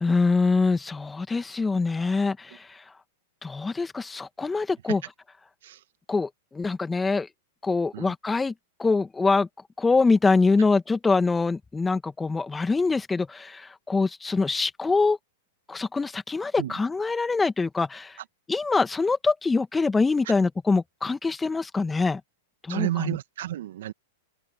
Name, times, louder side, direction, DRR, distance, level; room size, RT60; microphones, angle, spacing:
voice 1, 0.0-2.8 3.4-5.0 6.1-7.3 7.6-8.5 8.8-9.5 9.8-15.2 15.7-18.2 18.5-22.2 22.6-23.2, left 4 dB, 10° left, 2.0 m, -24 dB
voice 2, 22.7-23.9, right 13 dB, 65° right, 2.1 m, -31 dB
open air
hypercardioid pair, 105°, 0 cm